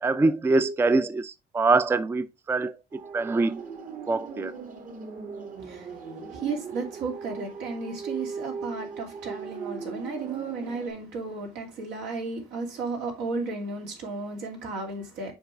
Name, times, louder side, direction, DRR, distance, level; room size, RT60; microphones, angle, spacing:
voice 1, 0.0-3.6 4.1-4.5, right 3 dB, 15° right, 0.4 m, -24 dB
sound 1, 2.9-10.9, right 5 dB, 50° right, 1.6 m, -38 dB
voice 2, 5.6-15.3, right 3 dB, 85° right, 2.6 m, -34 dB
7.2 x 4.6 x 3.1 m
cardioid pair, 110°, 17 cm